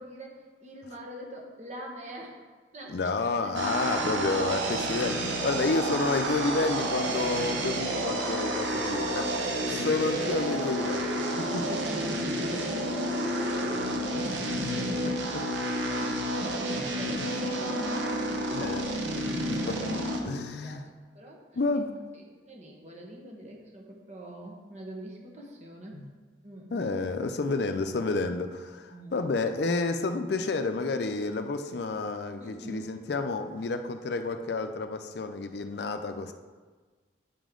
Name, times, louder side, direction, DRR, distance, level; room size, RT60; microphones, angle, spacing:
voice 1, 0.0-2.4 2.7-3.1 8.7-9.3 12.3-15.5 15.9-19.7 20.2-20.8 21.1-21.4 22.1-25.9 26.4-26.9 28.9-29.2 32.4-32.9, right 1 dB, 40° right, -1 dB, 1.3 m, -45 dB
voice 2, 2.9-9.3 9.7-11.8 14.1-14.4 15.0-15.4 18.5-18.8 19.7-19.9 20.2-20.9 21.6-21.9 25.9-26.1 26.7-36.3, left 3 dB, 65° left, 8 dB, 0.5 m, -30 dB
sound 1, 3.5-20.2, right 1 dB, 85° right, 0.9 m, -30 dB
8.5 x 5.2 x 3.8 m, 1.4 s
head